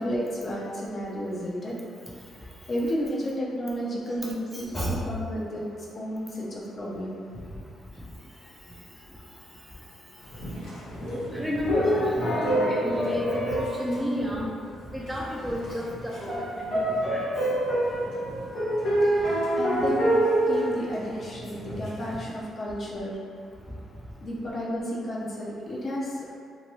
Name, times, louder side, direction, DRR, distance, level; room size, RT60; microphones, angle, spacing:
voice 1, 0.0-1.8 2.7-4.7 5.0-5.7 5.9-7.2 19.0-20.2 20.5-23.2 24.2-26.3, equal, 40° left, -4 dB, 0.6 m, -32 dB
sound 1, 10.3-14.7 15.1-15.2 15.5-22.2, right 1 dB, 80° left, 1.2 m, -27 dB
voice 2, 11.3-14.5 14.9-17.2, equal, 5° right, -5 dB, 0.4 m, -31 dB
2.7 x 2.2 x 3.0 m, 2.3 s
cardioid pair, 90°, 0 cm